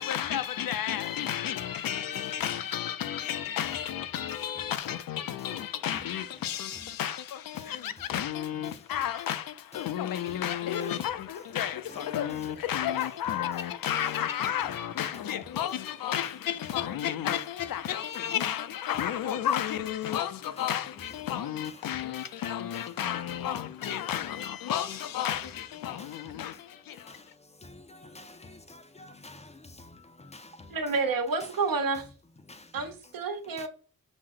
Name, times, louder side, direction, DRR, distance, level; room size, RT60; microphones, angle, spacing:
voice 1, 0.0-27.2, left 10 dB, 80° left, 0.5 m, -32 dB
voice 2, 2.2-2.6 3.2-3.4 4.2-4.7 5.4-5.6 5.9-6.0 6.4-6.9 7.5-8.2 8.6-9.1 9.7-9.9 10.3-12.6 13.3-13.4 15.0-16.3 16.7-16.9 17.3-17.8 18.4-18.5 18.9-19.1 19.5-19.6 20.6-21.3 21.6-22.0 22.7-22.9 23.3-23.4 23.8-24.3 25.0-25.4 25.7-26.5 26.9-30.9 31.4-31.7 32.4-33.1 33.4-33.7, left 2 dB, 20° left, 0.4 m, -51 dB
voice 3, 30.7-32.1 32.7-33.7, right 4 dB, 85° right, 1.0 m, -29 dB
6.1 x 2.0 x 3.7 m
wide cardioid pair, 175°, 34 cm